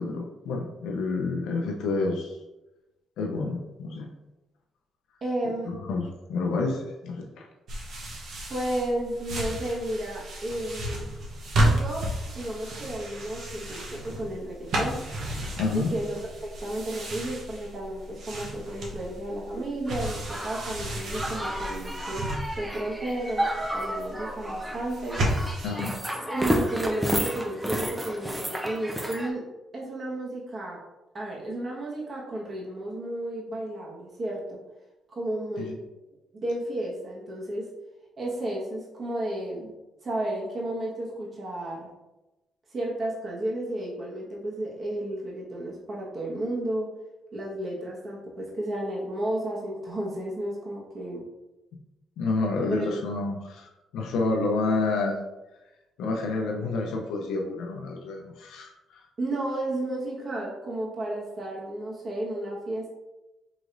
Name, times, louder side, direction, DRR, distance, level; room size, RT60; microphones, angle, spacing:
voice 1, 0.0-2.4 3.2-4.1 5.7-7.5 15.6-15.9 25.6-25.9 35.6-35.8 52.2-55.2 56.0-59.1, left 3 dB, 85° left, 0 dB, 0.6 m, -29 dB
voice 2, 5.2-5.7 8.5-11.1 11.6-12.0 12.3-15.0 15.7-16.2 16.4-22.3 22.6-23.5 23.7-25.2 26.3-29.4 29.7-30.8 31.1-34.6 35.1-35.7 36.4-37.7 38.2-39.7 40.0-41.9 42.7-46.9 47.3-51.2 52.7-52.9 59.2-62.9, right 1 dB, 40° right, -4 dB, 1.3 m, -32 dB
sound 1, 7.7-25.7, right 1 dB, 65° right, 1.0 m, -32 dB
sound 2, 19.9-29.3, equal, 10° right, 0.6 m, -31 dB
4.9 x 3.0 x 2.6 m, 1.0 s
cardioid pair, 90°, 0 cm